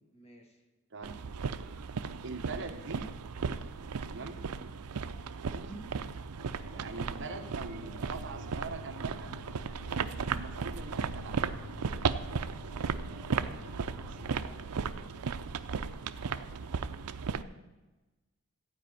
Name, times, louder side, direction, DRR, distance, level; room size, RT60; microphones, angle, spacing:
voice 1, 0.1-0.6 5.9-6.2 14.3-15.3 15.7-16.8, equal, 30° left, 3 dB, 1.6 m, -57 dB
sound 1, 1.0-17.4, right 5 dB, 90° right, 0.5 m, -36 dB
voice 2, 2.2-3.0 4.1-4.4 5.4-5.8 6.7-9.3 10.3-11.5 14.0-14.6, right 3 dB, 55° right, 5 dB, 1.1 m, -43 dB
sound 2, 6.3-14.5, left 4 dB, 75° left, 3.4 m, -50 dB
15.0 x 5.0 x 9.2 m, 1.1 s
head